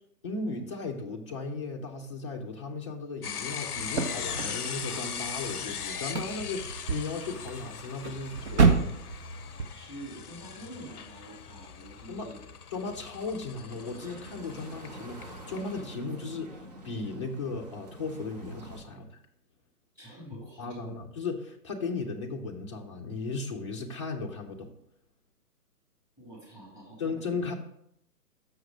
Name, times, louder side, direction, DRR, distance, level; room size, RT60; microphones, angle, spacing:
voice 1, 0.2-9.1 12.1-12.3 12.7-19.2 20.6-24.7 27.0-27.5, left 3 dB, 20° left, 2 dB, 0.6 m, -36 dB
sound 1, 3.2-15.8, left 8 dB, 70° left, 0.6 m, -40 dB
sound 2, 3.8-9.7, right 5 dB, 45° right, 1.0 m, -30 dB
voice 2, 9.7-12.4 19.9-20.9 26.2-27.2, right 1 dB, 5° right, -3 dB, 2.4 m, -46 dB
sound 3, 13.7-18.8, right 1 dB, 25° right, 0.6 m, -46 dB
6.4 x 6.3 x 4.9 m, 0.75 s
figure-of-eight pair, 140°, 47 cm